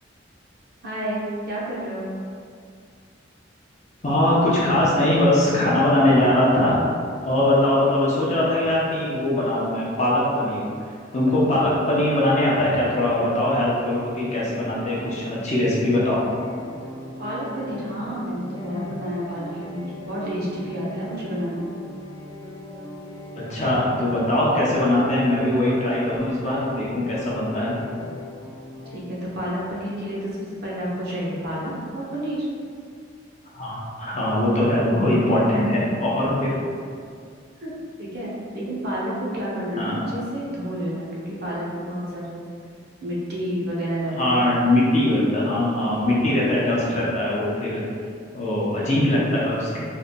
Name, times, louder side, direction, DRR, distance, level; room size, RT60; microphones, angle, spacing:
voice 1, 0.8-2.1 17.2-21.7 28.9-32.5 36.2-36.3 37.6-42.4 43.0-44.4, equal, 55° right, -6 dB, 0.8 m, -30 dB
voice 2, 4.0-6.8 7.2-10.7 11.1-16.2 18.7-18.9 23.4-27.7 33.5-36.5 39.8-40.0 44.2-47.8 48.3-49.8, left 1 dB, 35° left, -6 dB, 0.7 m, -21 dB
sound 1, 14.6-29.0, left 1 dB, 20° left, 0.3 m, -39 dB
3.9 x 3.1 x 2.2 m, 2.2 s
head